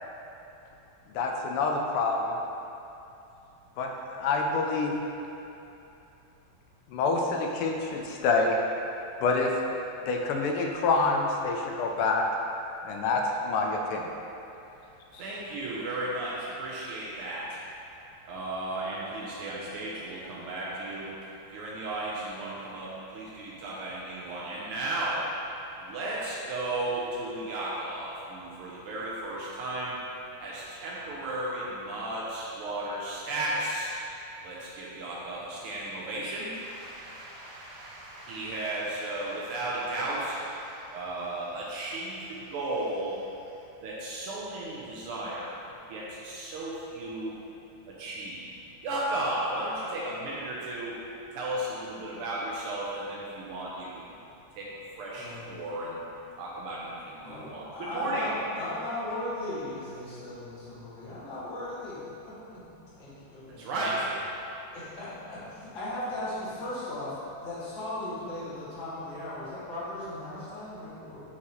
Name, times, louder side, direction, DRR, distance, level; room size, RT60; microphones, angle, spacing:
voice 1, 1.1-2.3 3.8-4.9 6.9-8.6 9.2-9.5 10.1-12.2 12.8-14.0 15.1-15.2, left 3 dB, 90° left, 1 dB, 1.5 m, -27 dB
voice 2, 15.2-17.6 18.3-21.1 21.5-25.2 25.8-30.0 30.4-33.9 34.4-43.2 43.8-45.6 45.9-47.4 47.9-48.5 48.8-51.0 51.3-54.1 54.6-54.7 55.0-56.0 56.4-58.3 63.6-64.1, right 1 dB, 85° right, -6 dB, 1.7 m, -34 dB
voice 3, 55.2-55.5 57.2-62.4 63.0-64.1 64.7-71.2, left 1 dB, 65° left, -11 dB, 2.4 m, -37 dB
6.2 x 5.7 x 3.0 m, 2.8 s
omnidirectional pair, 2.4 m